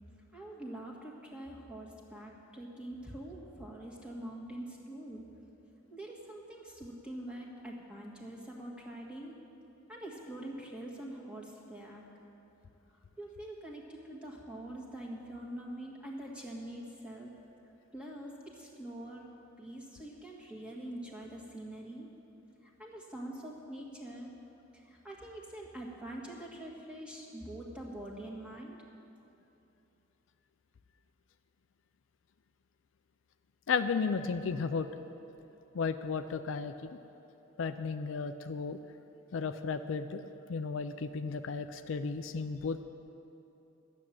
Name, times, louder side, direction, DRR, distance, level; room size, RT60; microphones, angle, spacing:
voice 1, 0.3-5.2 5.9-9.3 9.9-12.0 12.9-17.3 17.9-19.3 19.6-22.1 22.6-24.3 24.7-28.8, right 1 dB, 5° right, -3 dB, 1.6 m, -44 dB
voice 2, 33.7-34.9 35.7-37.0 37.6-38.8 39.3-40.2 40.5-42.8, left 5 dB, 65° left, 9 dB, 0.4 m, -34 dB
12.0 x 7.3 x 9.1 m, 2.9 s
head